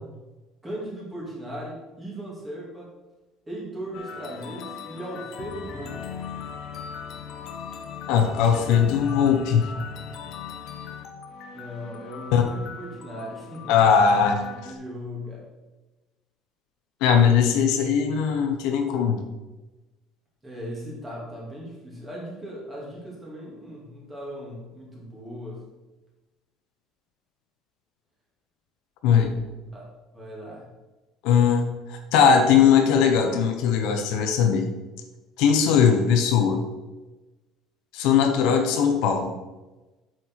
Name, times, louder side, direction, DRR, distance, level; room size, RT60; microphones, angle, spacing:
voice 1, 0.6-2.9 3.5-6.1 11.5-13.7 14.6-15.4 20.4-25.6 29.7-29.9 30.1-30.7 38.4-38.8, equal, 10° right, -5 dB, 2.6 m, -38 dB
sound 1, 3.9-14.7, left 7 dB, 45° left, 1.0 m, -38 dB
voice 2, 8.1-9.7 12.3-12.4 13.7-14.4 17.0-19.2 29.0-29.3 31.2-34.7 35.4-36.6 37.9-39.3, left 7 dB, 65° left, 5 dB, 1.0 m, -20 dB
8.4 x 6.3 x 4.7 m, 1.1 s
cardioid pair, 180°, 0 cm